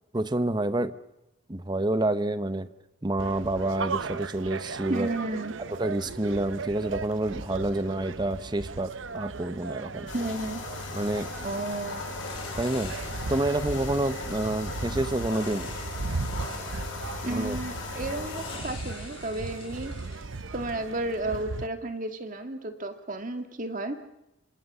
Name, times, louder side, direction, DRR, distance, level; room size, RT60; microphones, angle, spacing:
voice 1, 0.1-0.9 1.5-2.7 3.0-5.1 5.8-10.1 10.9-11.3 12.6-13.0 13.3-15.7 17.4-17.6, right 1 dB, 20° right, 12 dB, 0.9 m, -28 dB
sound 1, 3.2-21.7, right 3 dB, 75° right, 0.8 m, -37 dB
voice 2, 4.9-5.6 10.1-10.6 11.4-12.0 17.2-19.9 20.5-24.0, right 2 dB, 40° right, 7 dB, 2.0 m, -32 dB
sound 2, 10.1-18.6, left 3 dB, 75° left, 7.4 m, -38 dB
sound 3, 10.8-20.9, left 3 dB, 25° left, 6.7 m, -47 dB
28.0 x 25.5 x 5.6 m, 0.90 s
head